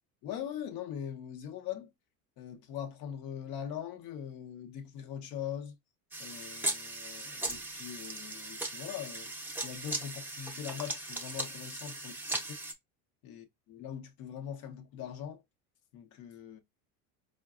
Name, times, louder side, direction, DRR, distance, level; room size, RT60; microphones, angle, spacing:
voice 1, 0.2-1.9 2.4-5.7 6.2-9.3 9.6-12.6 13.2-15.4 15.9-16.6, left 9 dB, 60° left, 0.9 m, -41 dB
sound 1, 6.1-12.7, right 2 dB, 5° right, 0.6 m, -38 dB
4.6 x 2.2 x 2.4 m
supercardioid pair, 105°, 41 cm